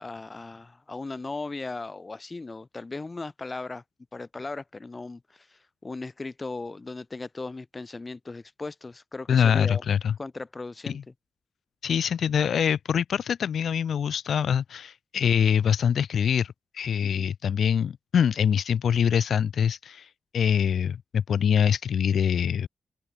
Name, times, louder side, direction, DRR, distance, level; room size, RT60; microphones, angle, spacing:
voice 1, 0.0-3.8 4.1-9.8 10.2-11.0 17.0-17.3, left 3 dB, 30° left, 5.2 m, -37 dB
voice 2, 9.3-10.1 10.9-11.0 11.8-22.7, left 8 dB, 75° left, 2.4 m, -24 dB
open air
cardioid pair, 60°, 0 cm